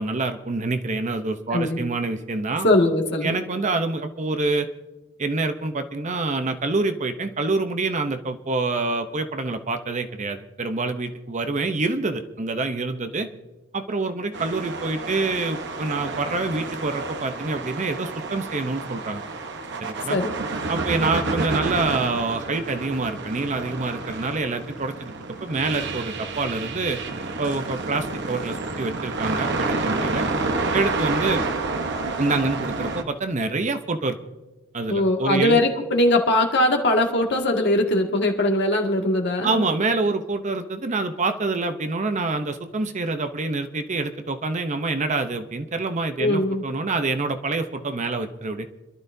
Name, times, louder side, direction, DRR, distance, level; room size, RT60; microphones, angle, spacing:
voice 1, 0.0-2.7 3.2-4.7 5.2-13.3 13.7-19.2 19.8-20.2 20.7-24.9 25.4-27.0 27.4-30.3 30.7-31.4 32.2-34.2 34.7-35.6 39.4-48.7, right 3 dB, 35° right, 8 dB, 0.7 m, -26 dB
voice 2, 2.6-3.3 20.1-20.3 34.9-39.7 46.2-46.6, left 1 dB, 55° left, 2 dB, 2.1 m, -21 dB
sound 1, 14.3-33.0, right 3 dB, 55° right, 1.0 m, -29 dB
27.0 x 12.0 x 2.7 m, 1.1 s
head